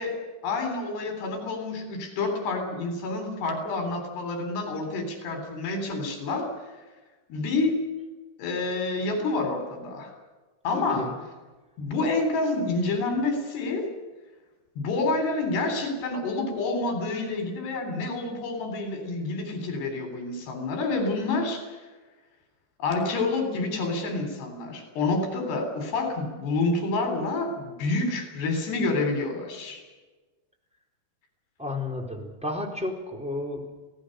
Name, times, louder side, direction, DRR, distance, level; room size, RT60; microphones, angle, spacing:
voice 1, 0.0-6.5 7.3-7.8 8.4-10.1 10.6-11.1 11.8-13.9 14.8-21.7 22.8-29.8, left 3 dB, 70° left, 4 dB, 5.7 m, -28 dB
voice 2, 10.6-11.2 31.6-33.7, left 2 dB, ahead, 1 dB, 3.5 m, -32 dB
28.0 x 18.0 x 6.6 m, 1.2 s
omnidirectional pair, 5.1 m